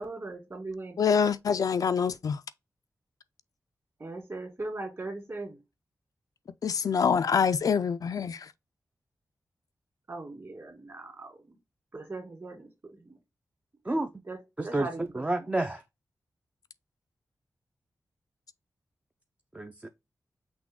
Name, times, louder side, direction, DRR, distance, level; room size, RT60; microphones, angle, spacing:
voice 1, 0.0-1.0 4.0-5.6 10.1-11.5 11.9-13.2 13.9-14.0 14.3-14.4 14.6-15.1 15.4-15.5, right 2 dB, 40° right, 1.9 m, -39 dB
voice 2, 1.0-2.4 6.6-8.5, left 6 dB, 65° left, 0.3 m, -25 dB
voice 3, 15.1-15.8 19.5-19.9, right 2 dB, 20° right, 0.4 m, -29 dB
6.0 x 2.3 x 3.5 m
wide cardioid pair, 110°, 7 cm